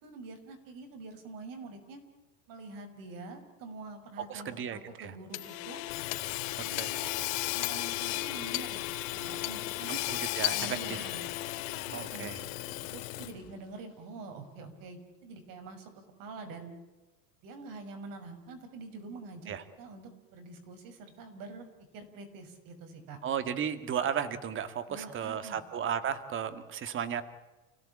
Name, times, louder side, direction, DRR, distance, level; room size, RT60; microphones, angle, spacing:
voice 1, 0.0-2.0 2.5-5.8 6.6-7.1 7.5-9.9 10.4-11.3 11.8-16.7 17.4-19.5 19.8-21.7 21.9-23.2 24.9-25.6, right 3 dB, 55° right, 6 dB, 6.4 m, -46 dB
voice 2, 4.3-5.1 6.8-6.9 9.9-11.0 11.9-12.4 19.5-19.6 23.2-27.2, right 8 dB, 30° right, 10 dB, 2.1 m, -34 dB
Hammer / Sawing, 5.3-13.5, left 18 dB, 75° left, 2.6 m, -35 dB
29.5 x 17.5 x 8.7 m, 1.1 s
cardioid pair, 145°, 40 cm